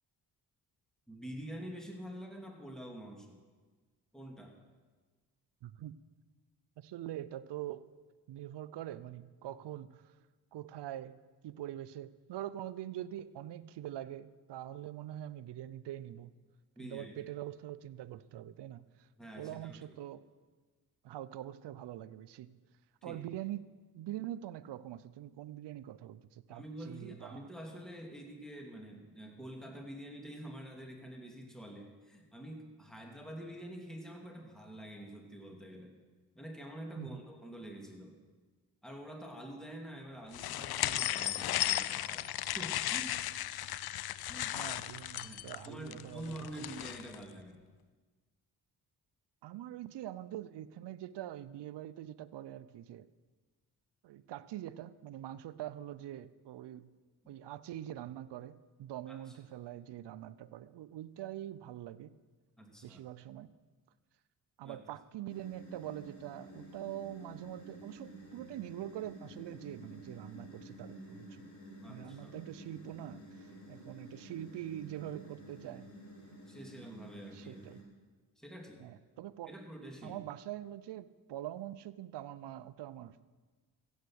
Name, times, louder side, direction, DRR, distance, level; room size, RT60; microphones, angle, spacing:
voice 1, 1.1-3.4 4.1-4.6 16.8-17.1 19.2-20.0 23.0-23.2 26.5-36.0 36.3-38.2 38.8-43.2 44.3-44.6 45.2-47.6 59.1-59.4 62.6-63.0 64.6-64.8 71.8-72.4 76.5-77.7 78.4-78.9 79.5-80.2, right 1 dB, ahead, 1 dB, 2.8 m, -47 dB
voice 2, 5.6-6.0 6.8-7.9 8.3-10.1 10.5-11.2 11.4-16.3 16.8-19.1 19.4-20.2 21.0-22.6 23.0-23.6 23.9-27.5 37.0-37.2 44.5-46.5 49.4-53.1 54.0-56.9 57.3-62.2 62.8-63.5 64.6-71.4 71.9-75.9 77.3-77.8 78.8-79.5 80.0-83.2, right 12 dB, 70° right, 17 dB, 0.7 m, -44 dB
sound 1, 40.3-47.2, left 13 dB, 60° left, 0.5 m, -35 dB
sound 2, 65.3-77.8, right 1 dB, 40° left, 3.8 m, -51 dB
15.5 x 8.2 x 6.4 m, 1.4 s
supercardioid pair, 45°, 43 cm